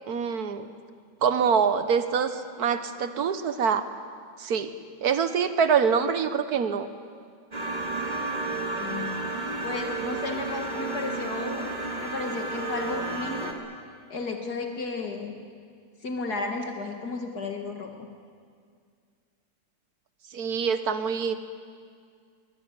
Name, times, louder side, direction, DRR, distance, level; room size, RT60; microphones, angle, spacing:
voice 1, 0.1-0.7 1.2-3.8 4.4-4.7 5.0-6.9 20.3-21.3, right 6 dB, 60° right, 10 dB, 1.6 m, -25 dB
sound 1, 7.5-13.5, right 3 dB, 25° right, 2.3 m, -32 dB
voice 2, 8.8-9.1 9.6-11.7 12.0-13.5 14.1-15.3 16.0-17.9, left 3 dB, 60° left, 3 dB, 2.2 m, -33 dB
22.5 x 18.0 x 9.8 m, 2.2 s
omnidirectional pair, 2.0 m